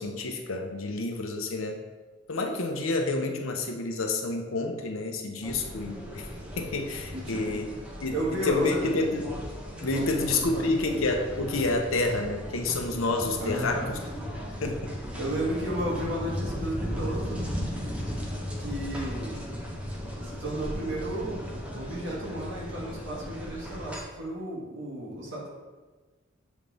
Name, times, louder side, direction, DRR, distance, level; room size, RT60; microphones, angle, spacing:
voice 1, 0.0-1.8 2.3-6.3 6.6-7.7 8.0-9.3 9.8-14.0 14.6-15.0, left 2 dB, 80° left, 4 dB, 0.7 m, -29 dB
sound 1, 5.4-24.0, equal, 5° right, 0.7 m, -36 dB
voice 2, 7.1-7.6 8.1-8.8 9.9-10.7 13.4-13.9 15.2-17.5 18.6-19.6 20.2-25.5, right 1 dB, 60° right, -5 dB, 1.7 m, -33 dB
7.2 x 3.4 x 4.0 m, 1.3 s
head